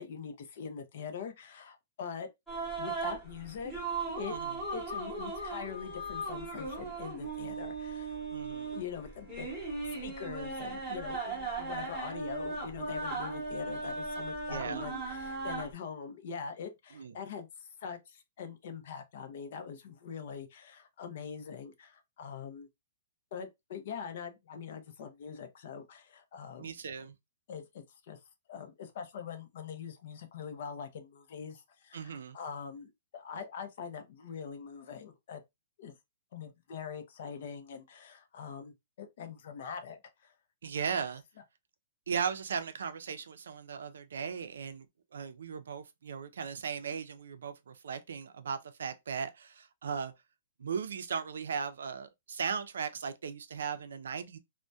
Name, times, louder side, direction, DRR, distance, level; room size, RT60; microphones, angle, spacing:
voice 1, 0.0-2.3 2.8-3.7 4.2-4.4 4.7-8.2 8.7-9.6 10.0-22.7 23.3-26.8 27.5-28.2 28.5-35.4 35.8-35.9 36.3-40.3, left 6 dB, 50° left, 0.5 m, -43 dB
sound 1, 2.5-15.7, right 3 dB, ahead, 1.0 m, -38 dB
voice 2, 8.3-8.7 14.5-14.8 17.0-17.2 26.6-27.2 31.9-32.4 40.6-41.2 42.1-44.9 45.1-50.1 50.6-54.4, right 6 dB, 85° right, 0.4 m, -37 dB
2.6 x 2.1 x 2.2 m
hypercardioid pair, 170°, 0 cm